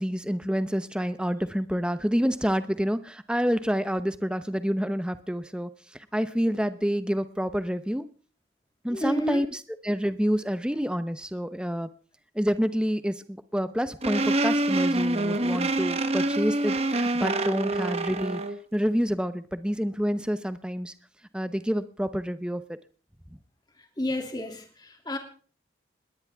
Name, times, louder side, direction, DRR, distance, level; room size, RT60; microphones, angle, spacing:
voice 1, 0.0-8.1 8.8-11.9 12.3-18.4 18.7-20.9 21.3-22.6 23.3-23.4, equal, 5° right, 12 dB, 0.8 m, -28 dB
voice 2, 8.9-9.4 24.0-25.2, equal, 20° left, 3 dB, 2.8 m, -30 dB
sound 1, 14.0-18.6, right 2 dB, 35° right, 1.2 m, -26 dB
21.0 x 18.5 x 3.6 m, 0.39 s
head